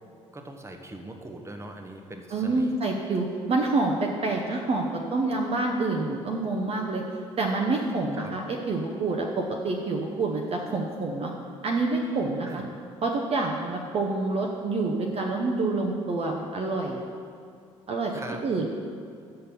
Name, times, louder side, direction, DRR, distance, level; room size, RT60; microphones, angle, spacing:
voice 1, 0.3-2.8 8.1-8.4 12.4-12.6 18.1-18.7, right 1 dB, 15° right, 4 dB, 1.0 m, -41 dB
voice 2, 2.3-7.0 7.4-11.3 11.6-12.6 13.0-17.0 17.9-18.1 18.4-18.7, right 3 dB, 40° right, 0 dB, 0.8 m, -27 dB
6.7 x 5.8 x 6.8 m, 2.4 s
figure-of-eight pair, 45°, 16 cm